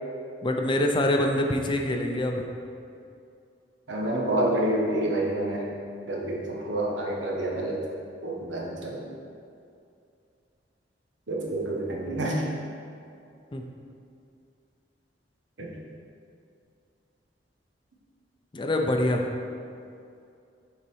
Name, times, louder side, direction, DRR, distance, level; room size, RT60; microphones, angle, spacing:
voice 1, 0.4-2.5 13.5-13.6 18.5-19.2, left 1 dB, 25° left, 3 dB, 0.5 m, -25 dB
voice 2, 3.9-5.7 6.1-7.8 8.2-9.1 11.3-12.4 15.6-15.7, right 1 dB, 90° right, -2 dB, 1.2 m, -28 dB
7.0 x 4.0 x 4.7 m, 2.5 s
head